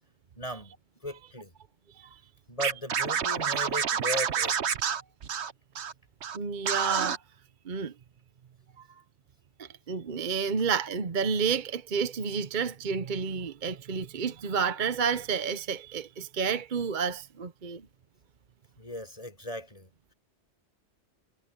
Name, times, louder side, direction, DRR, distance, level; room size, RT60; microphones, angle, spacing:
voice 1, 0.4-0.7 1.0-1.5 2.5-4.6 18.8-19.9, left 1 dB, 30° left, 5.6 m, -37 dB
Scratching (performance technique), 2.6-5.9 6.2-6.4 6.7-7.2, right 7 dB, 70° right, 1.2 m, -28 dB
voice 2, 6.3-7.2 7.7-7.9 9.6-17.8, right 6 dB, 45° right, 0.9 m, -30 dB
omnidirectional pair, 1.2 m